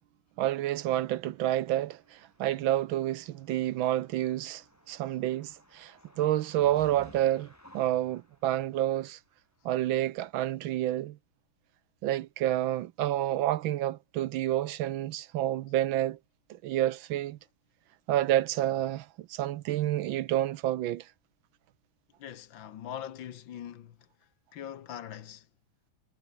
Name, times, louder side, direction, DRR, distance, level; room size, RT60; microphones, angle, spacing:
voice 1, 0.4-7.5 7.7-9.2 9.6-11.2 12.0-16.2 16.5-17.4 18.1-21.1, right 13 dB, 75° right, 1.4 m, -29 dB
sound 1, 1.3-8.9, left 1 dB, 5° left, 3.3 m, -56 dB
voice 2, 22.2-24.1 24.5-25.5, left 10 dB, 65° left, 1.8 m, -42 dB
omnidirectional pair, 2.3 m